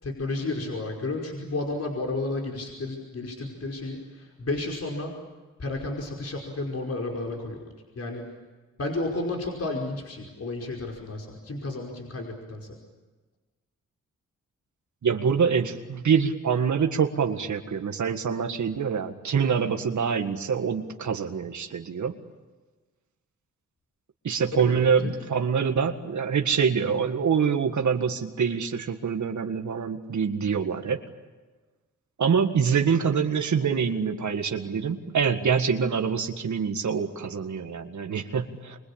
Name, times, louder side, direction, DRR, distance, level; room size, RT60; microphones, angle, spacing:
voice 1, 0.0-5.2 5.6-7.6 8.0-8.3 8.8-12.7 24.6-25.1, left 2 dB, 55° left, 0 dB, 5.3 m, -32 dB
voice 2, 15.0-22.2 24.2-31.0 32.2-38.8, right 6 dB, 70° right, 5 dB, 1.8 m, -25 dB
26.5 x 24.0 x 8.8 m, 1.3 s
cardioid pair, 65°, 30 cm